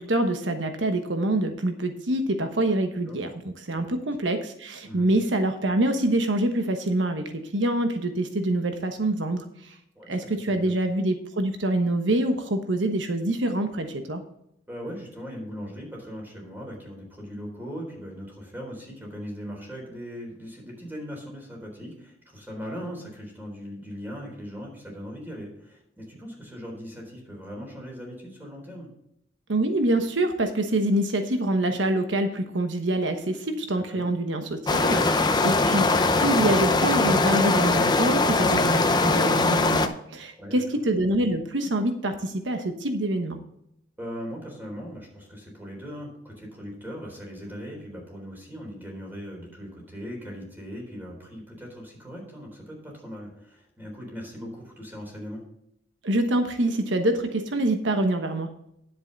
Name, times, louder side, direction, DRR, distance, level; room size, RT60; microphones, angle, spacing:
voice 1, 0.0-3.3 3.7-9.7 10.1-14.2 29.5-35.8 36.2-43.4 56.0-58.5, right 1 dB, 90° right, 6 dB, 1.2 m, -25 dB
voice 2, 14.7-28.9 33.7-34.1 40.4-40.8 44.0-55.4, equal, 10° right, -1 dB, 3.9 m, -39 dB
sound 1, 34.7-39.9, left 3 dB, 25° left, 0.7 m, -21 dB
10.5 x 7.9 x 4.0 m, 0.76 s
head